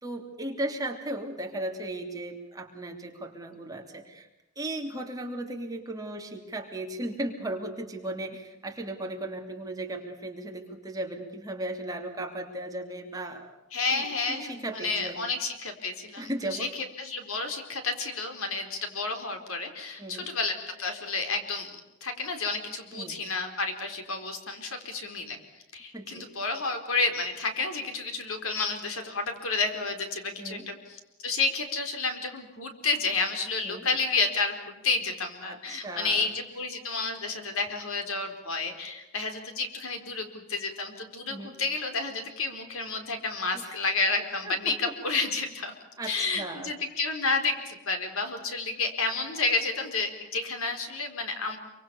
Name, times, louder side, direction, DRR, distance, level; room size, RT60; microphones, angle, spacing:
voice 1, 0.0-4.3 4.6-13.5 13.9-15.3 16.2-16.7 20.0-20.3 22.9-23.2 25.9-26.3 30.4-30.7 33.6-33.9 35.4-36.3 41.3-41.5 43.5-43.7 44.4-44.9 46.0-46.7, right 1 dB, 15° right, 2 dB, 3.0 m, -36 dB
voice 2, 13.7-21.7 22.0-25.4 25.7-30.8 31.2-45.7 46.0-51.6, left 3 dB, 70° left, 5 dB, 4.4 m, -30 dB
27.0 x 25.0 x 7.1 m, 0.92 s
head